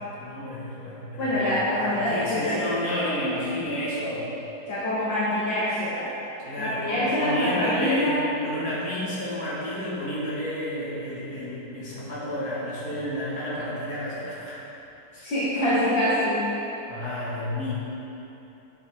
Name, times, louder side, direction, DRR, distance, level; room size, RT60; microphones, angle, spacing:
voice 1, 0.0-1.4 1.8-4.3 6.4-14.7 15.1-15.3 16.9-17.7, left 1 dB, 50° left, -8 dB, 2.7 m, -31 dB
voice 2, 1.2-3.0 4.7-6.1 6.6-8.2 15.2-16.5, left 1 dB, 70° left, -11 dB, 2.3 m, -25 dB
10.0 x 8.5 x 3.6 m, 3.0 s
omnidirectional pair, 2.2 m